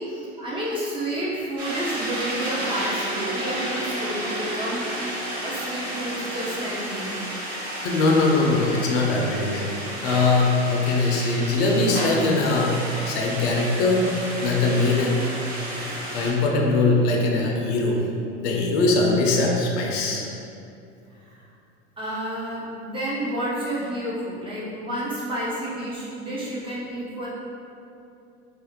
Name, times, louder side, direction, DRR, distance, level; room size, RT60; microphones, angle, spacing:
voice 1, 0.0-7.2 21.2-21.4 22.0-27.3, right 1 dB, 15° right, -8 dB, 0.4 m, -30 dB
sound 1, 1.6-16.3, right 1 dB, 45° right, 0.9 m, -31 dB
voice 2, 7.8-12.8 13.1-14.1 14.4-15.2 15.7-15.8 16.1-18.0 18.4-20.3, left 3 dB, 65° left, 0 dB, 0.5 m, -21 dB
2.4 x 2.0 x 2.9 m, 2.6 s
hypercardioid pair, 105°, 34 cm